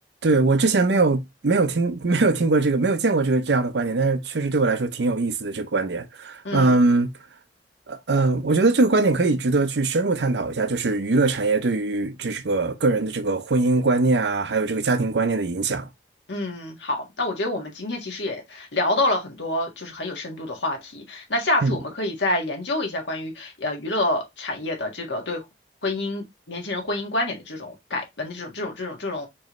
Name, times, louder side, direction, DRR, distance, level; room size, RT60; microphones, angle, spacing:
voice 1, 0.2-7.1 7.9-15.9 21.6-21.8, right 3 dB, 75° right, 0.6 m, -21 dB
voice 2, 6.4-6.7 16.3-25.4 25.8-29.3, left 2 dB, 90° left, 1.6 m, -27 dB
4.5 x 3.1 x 3.1 m
head